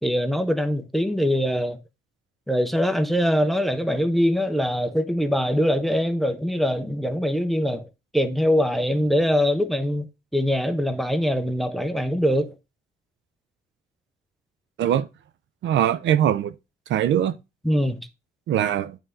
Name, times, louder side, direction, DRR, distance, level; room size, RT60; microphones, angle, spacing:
voice 1, 0.0-1.8 2.5-7.9 8.1-10.1 10.3-12.5 17.6-18.1, equal, ahead, 0.6 m, -23 dB
voice 2, 15.6-16.5 16.9-17.4 18.5-19.0, right 10 dB, 70° right, 0.5 m, -21 dB
8.8 x 3.5 x 3.7 m
cardioid pair, 110°, 20 cm